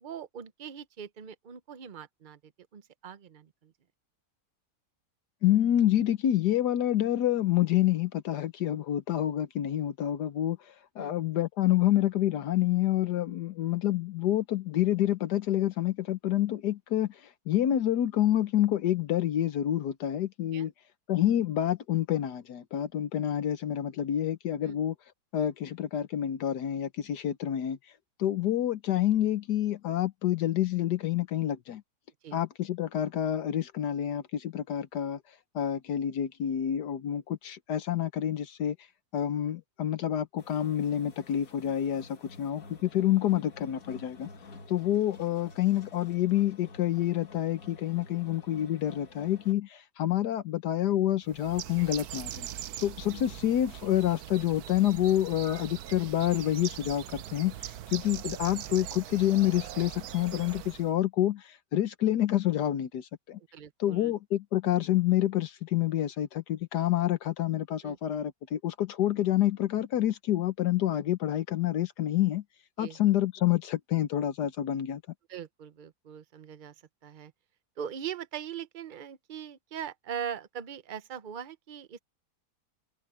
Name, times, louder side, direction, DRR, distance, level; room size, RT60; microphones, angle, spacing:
voice 1, 0.0-3.7 11.0-11.1 20.5-20.7 24.6-24.8 32.2-32.4 63.4-64.1 67.8-68.0 72.8-73.0 75.3-76.7 77.0-77.3 77.8-82.0, right 8 dB, 45° right, 0.7 m, -41 dB
voice 2, 5.4-20.7 21.1-24.9 25.3-27.8 28.2-31.8 32.3-35.2 35.5-38.8 39.1-44.3 44.7-52.5 52.8-63.4 63.8-72.4 72.8-75.0, left 12 dB, 75° left, 1.4 m, -28 dB
sound 1, 40.4-49.5, left 3 dB, 55° left, 2.3 m, -50 dB
Bird, 51.3-60.9, right 11 dB, 70° right, 1.2 m, -41 dB
omnidirectional pair, 1.8 m